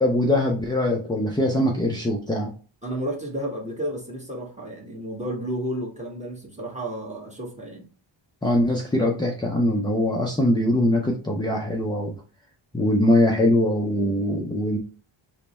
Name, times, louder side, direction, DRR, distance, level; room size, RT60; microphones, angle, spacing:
voice 1, 0.0-2.5 8.4-12.2 12.7-14.8, left 1 dB, 10° left, 0 dB, 0.4 m, -22 dB
voice 2, 2.8-7.9, right 1 dB, 15° right, -1 dB, 1.0 m, -32 dB
3.3 x 2.0 x 4.1 m, 0.38 s
wide cardioid pair, 110°, 49 cm